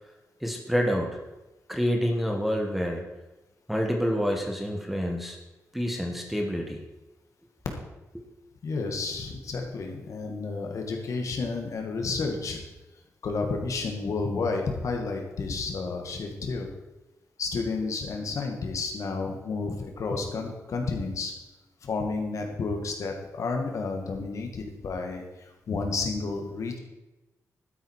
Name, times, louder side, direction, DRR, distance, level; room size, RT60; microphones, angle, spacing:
voice 1, 0.4-1.2 1.7-3.0 3.7-5.4 5.7-6.8 8.1-8.2, equal, ahead, 2 dB, 1.4 m, -27 dB
voice 2, 8.6-12.6 13.2-16.7 17.4-21.3 21.8-26.8, left 4 dB, 60° left, 3 dB, 2.2 m, -31 dB
12.5 x 10.5 x 4.8 m, 1.1 s
wide cardioid pair, 170°, 6 cm